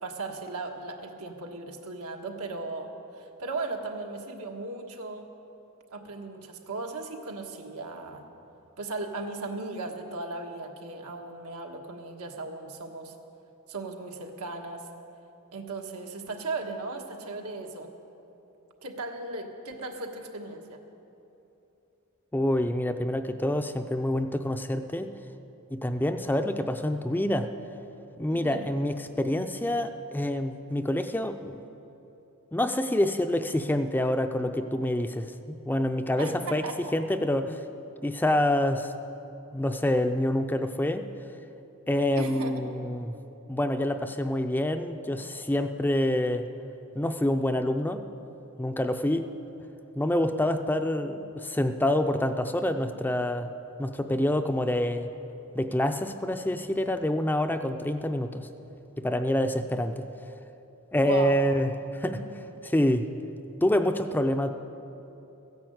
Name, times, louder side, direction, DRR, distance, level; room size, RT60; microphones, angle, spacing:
voice 1, 0.0-5.3 5.9-8.2 8.8-13.1 13.7-14.9 15.5-17.9 18.8-20.8 28.3-28.6 36.2-36.9 42.1-42.7 61.0-61.4 62.1-62.3, right 3 dB, 90° right, 3 dB, 1.4 m, -37 dB
voice 2, 22.3-25.1 25.8-27.5 28.2-31.6 32.5-37.6 38.0-38.9 39.5-41.0 41.9-43.1 43.5-46.5 47.0-48.0 48.6-49.2 50.0-53.5 53.8-55.1 55.5-58.5 59.0-60.0 60.9-62.2 62.6-63.0 63.6-64.5, left 1 dB, 10° left, 8 dB, 0.4 m, -27 dB
15.0 x 10.5 x 7.9 m, 2.9 s
head